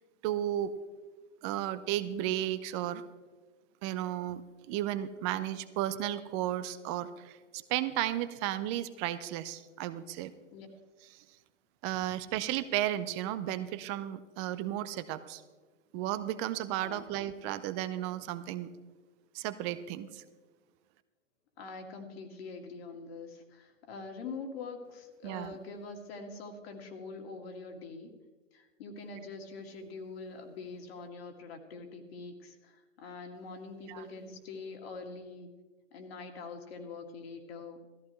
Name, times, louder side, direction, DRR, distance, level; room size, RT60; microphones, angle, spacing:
voice 1, 0.2-0.7 1.4-3.0 3.8-4.4 4.7-10.3 11.8-15.4 15.9-18.7 19.3-20.2 25.2-25.5 33.9-34.0, right 13 dB, 25° right, 13 dB, 0.5 m, -34 dB
voice 2, 16.8-17.1 21.6-28.1 28.5-35.5 35.9-37.8, left 4 dB, 55° left, 4 dB, 2.3 m, -44 dB
16.5 x 14.0 x 3.1 m, 1.3 s
figure-of-eight pair, 110°, 37 cm